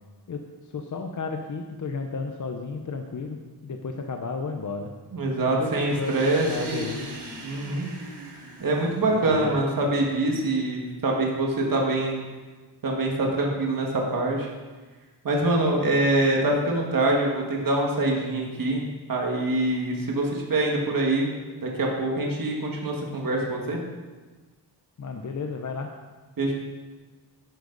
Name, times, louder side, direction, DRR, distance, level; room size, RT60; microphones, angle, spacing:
voice 1, 0.3-3.4 3.6-4.9 5.4-7.2 9.1-9.6 25.0-25.9, left 4 dB, 45° left, 3 dB, 0.8 m, -33 dB
voice 2, 5.1-6.9 7.4-7.9 8.6-12.2 12.8-14.5 15.2-18.8 19.1-21.3 21.6-23.8 26.4-26.5, right 2 dB, 55° right, -1 dB, 1.9 m, -24 dB
sound 1, 5.9-9.6, right 2 dB, 80° right, 2.7 m, -40 dB
11.5 x 10.5 x 4.0 m, 1.3 s
wide cardioid pair, 160°, 41 cm